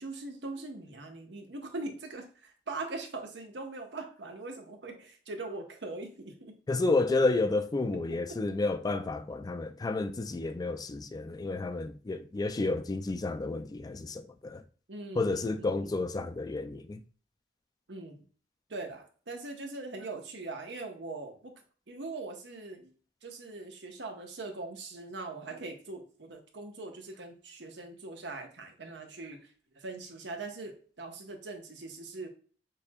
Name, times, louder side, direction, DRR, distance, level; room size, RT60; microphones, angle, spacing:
voice 1, 0.0-6.6 8.3-8.4 14.9-16.0 17.9-18.3 18.7-21.5 21.9-22.9 23.2-32.3, right 3 dB, 75° right, 1.0 m, -41 dB
voice 2, 6.7-14.6 15.2-17.0, left 3 dB, 20° left, 0.3 m, -31 dB
6.6 x 2.9 x 2.3 m
head